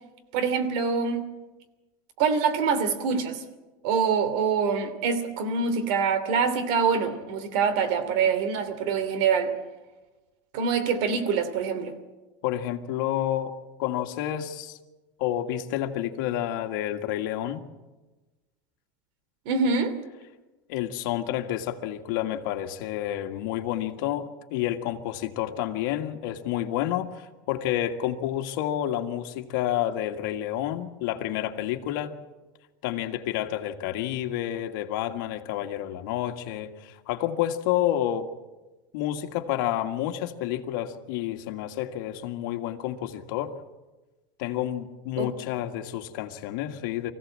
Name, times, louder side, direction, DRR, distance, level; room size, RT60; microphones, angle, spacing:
voice 1, 0.3-1.2 2.2-3.4 3.8-9.5 10.5-11.9 19.4-19.9 45.2-45.3, right 5 dB, 65° right, 11 dB, 2.8 m, -25 dB
voice 2, 12.4-14.8 15.2-17.6 20.7-32.1 32.8-38.3 38.9-43.5 44.4-47.1, left 12 dB, 75° left, 4 dB, 1.8 m, -29 dB
24.5 x 16.0 x 7.6 m, 1.2 s
supercardioid pair, 145°, 11 cm